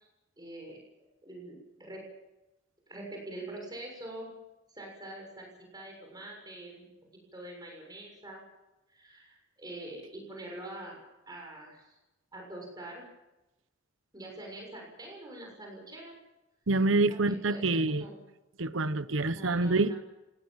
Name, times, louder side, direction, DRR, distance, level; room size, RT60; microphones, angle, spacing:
voice 1, 0.4-0.8 1.2-2.0 2.9-4.3 4.7-6.9 7.3-8.4 8.9-11.0 11.3-12.0 12.3-13.0 14.1-16.1 17.1-18.2 19.2-20.0, right 1 dB, 20° right, 0 dB, 6.8 m, -44 dB
voice 2, 16.7-18.0 18.6-19.9, right 2 dB, 85° right, 14 dB, 1.1 m, -26 dB
25.0 x 18.0 x 7.5 m, 0.99 s
head